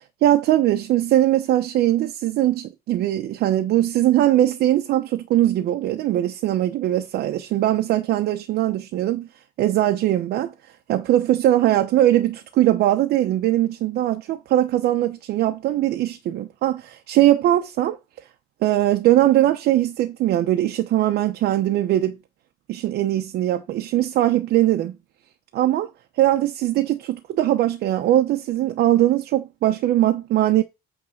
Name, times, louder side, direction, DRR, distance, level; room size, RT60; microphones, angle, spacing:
voice 1, 0.2-9.3 9.6-10.5 10.9-18.0 18.6-22.2 22.7-24.9 25.5-25.9 26.2-30.6, right 13 dB, 75° right, 0.9 m, -20 dB
8.8 x 3.7 x 6.4 m
cardioid pair, 110°, 17 cm